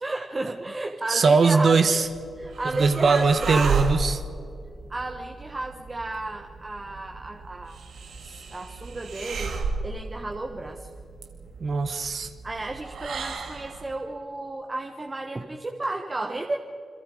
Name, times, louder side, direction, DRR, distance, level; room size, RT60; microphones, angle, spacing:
voice 1, 0.0-2.0 2.4-3.8 4.9-7.8 8.2-10.9 12.4-16.6, right 2 dB, 25° right, 3 dB, 1.3 m, -33 dB
voice 2, 1.1-2.1 2.8-4.2 11.6-12.3, right 4 dB, 60° right, 9 dB, 1.3 m, -20 dB
sound 1, 1.9-14.0, right 5 dB, 80° right, 2.4 m, -34 dB
29.0 x 22.5 x 5.1 m, 2.7 s
cardioid pair, 90°, 0 cm